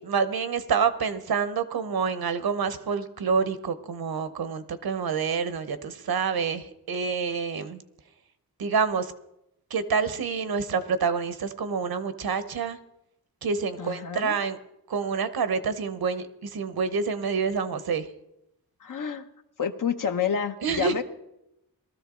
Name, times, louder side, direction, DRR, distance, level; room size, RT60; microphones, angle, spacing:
voice 1, 0.0-7.8 8.6-9.1 9.7-12.8 13.4-14.6 14.9-18.1 20.6-21.0, right 5 dB, 75° right, 12 dB, 1.0 m, -27 dB
voice 2, 13.8-14.4 18.8-19.3 19.6-21.0, left 7 dB, 60° left, 7 dB, 1.0 m, -29 dB
19.5 x 13.5 x 3.8 m, 0.85 s
wide cardioid pair, 135°, 37 cm